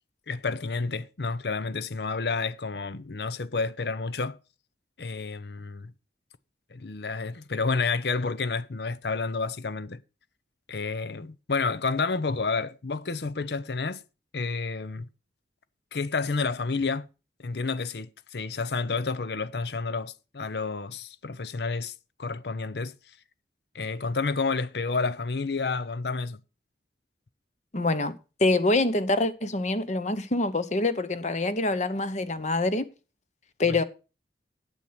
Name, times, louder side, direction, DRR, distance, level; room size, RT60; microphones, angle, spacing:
voice 1, 0.3-4.4 5.0-5.9 6.7-10.0 10.7-14.0 14.3-15.1 15.9-17.1 17.4-21.9 22.2-22.9 23.7-26.4 33.7-33.8, left 4 dB, 65° left, 0.7 m, -30 dB
voice 2, 27.7-28.1 28.4-32.9 33.6-33.8, left 2 dB, 40° left, 1.0 m, -25 dB
9.1 x 8.0 x 5.8 m
head